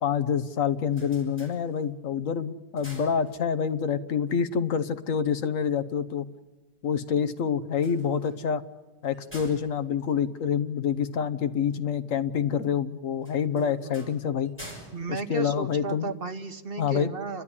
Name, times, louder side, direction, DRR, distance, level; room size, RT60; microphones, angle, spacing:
voice 1, 0.0-6.3 6.8-8.6 9.0-14.5 15.1-16.1 16.8-17.1, left 7 dB, 55° left, 11 dB, 1.3 m, -27 dB
sound 1, 0.7-2.1 2.5-3.8 7.6-11.1 13.2-16.2, equal, 5° left, 5.9 m, -49 dB
voice 2, 13.5-14.1 14.9-17.4, right 4 dB, 45° right, 7 dB, 0.9 m, -35 dB
29.5 x 12.5 x 9.9 m, 1.2 s
omnidirectional pair, 1.7 m